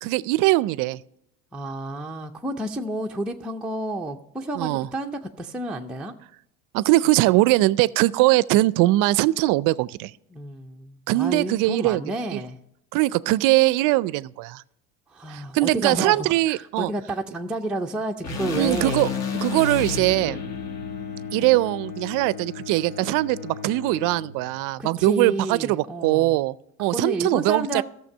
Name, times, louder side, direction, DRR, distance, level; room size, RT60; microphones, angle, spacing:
voice 1, 0.0-1.0 4.6-4.9 6.7-10.1 11.1-12.0 12.3-12.4 12.9-14.6 15.3-16.9 18.6-19.1 19.4-20.4 21.3-27.8, right 18 dB, 60° right, 0.4 m, -21 dB
voice 2, 1.5-6.1 10.3-12.6 15.1-19.0 20.2-20.5 24.8-26.4 26.9-27.8, right 1 dB, 5° right, 0.4 m, -30 dB
sound 1, 18.2-22.4, left 5 dB, 45° left, 1.4 m, -32 dB
Bowed string instrument, 18.3-25.0, left 6 dB, 65° left, 3.1 m, -38 dB
13.0 x 6.7 x 5.4 m
supercardioid pair, 115°, 37 cm